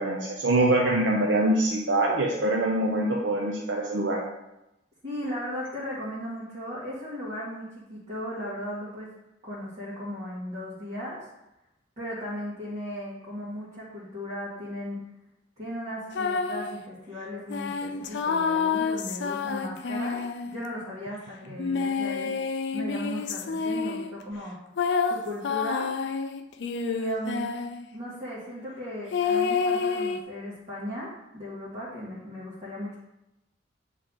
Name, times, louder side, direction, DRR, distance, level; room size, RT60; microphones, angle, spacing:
voice 1, 0.0-4.2, right 1 dB, 70° right, -2 dB, 0.8 m, -24 dB
voice 2, 5.0-9.1 9.4-11.3 12.0-15.0 15.6-22.4 22.7-24.6 25.0-25.9 26.6-27.5 27.9-33.0, equal, 40° right, -9 dB, 1.8 m, -36 dB
sound 1, 16.1-16.8 17.5-20.7 21.6-24.1 24.8-27.8 29.1-30.2, left 5 dB, 65° left, 0.4 m, -28 dB
8.6 x 3.3 x 4.0 m, 0.91 s
head